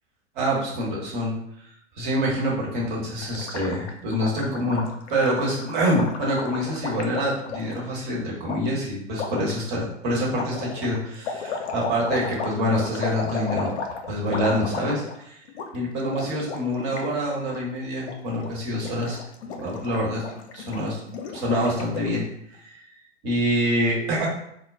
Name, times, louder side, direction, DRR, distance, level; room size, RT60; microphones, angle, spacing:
voice 1, 0.3-1.4 1.6-13.8 14.0-15.4 15.7-19.2 19.5-20.2 20.5-21.0 21.3-22.2 22.6-22.8 23.2-24.3, equal, 40° right, -4 dB, 1.1 m, -26 dB
Gurgling, 3.2-7.8 8.4-8.6 9.1-9.5 10.3-15.2 15.5-15.7 16.0-17.1 17.4-17.6 17.9-18.5 18.8-22.2, left 5 dB, 60° left, 0.6 m, -34 dB
2.2 x 2.1 x 3.5 m, 0.72 s
figure-of-eight pair, 105°, 37 cm